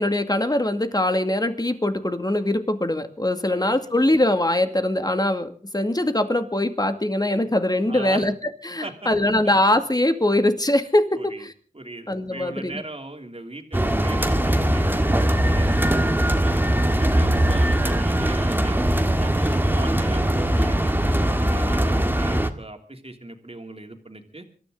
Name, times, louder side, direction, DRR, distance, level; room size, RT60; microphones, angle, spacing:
voice 1, 0.0-8.3 8.6-11.5 12.1-12.7, left 1 dB, 25° left, 8 dB, 2.2 m, -22 dB
voice 2, 7.9-8.3 8.8-9.1 11.2-11.5 11.7-18.8 19.2-24.4, right 2 dB, 40° right, 4 dB, 3.0 m, -38 dB
sound 1, 13.7-22.5, right 1 dB, 15° right, 1.8 m, -21 dB
26.5 x 13.5 x 3.8 m, 0.41 s
wide cardioid pair, 45°, 16 cm